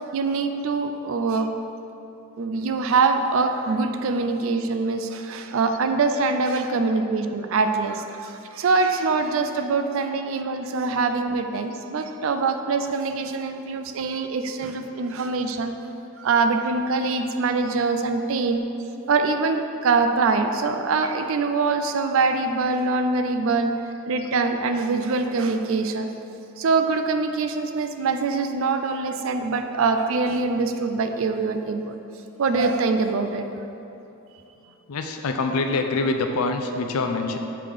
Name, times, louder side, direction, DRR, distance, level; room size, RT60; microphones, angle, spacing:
voice 1, 0.1-1.5 2.4-15.7 16.2-18.6 19.1-23.7 24.1-26.1 26.6-32.0 32.4-33.5, right 4 dB, 65° right, 7 dB, 0.4 m, -24 dB
voice 2, 34.9-37.4, left 3 dB, 80° left, 5 dB, 0.5 m, -25 dB
5.8 x 3.5 x 4.9 m, 2.9 s
head